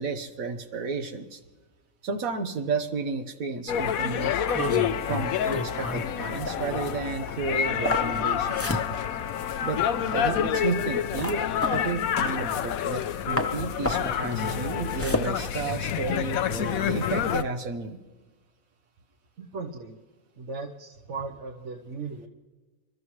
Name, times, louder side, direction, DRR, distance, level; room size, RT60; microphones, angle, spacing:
voice 1, 0.0-1.4 2.0-4.8 5.1-8.8 9.6-9.8 10.1-18.0, right 4 dB, 90° right, 7 dB, 1.6 m, -32 dB
sound 1, 3.7-17.4, left 9 dB, 85° left, 1.1 m, -28 dB
Trumpet, 4.2-11.6, left 10 dB, 70° left, 0.9 m, -40 dB
sound 2, 4.4-13.1 13.4-16.3, left 1 dB, 15° left, 0.7 m, -33 dB
voice 2, 19.4-20.0 20.4-22.3, right 4 dB, 60° right, 0 dB, 1.3 m, -37 dB
28.0 x 13.0 x 3.2 m, 1.3 s
omnidirectional pair, 1.4 m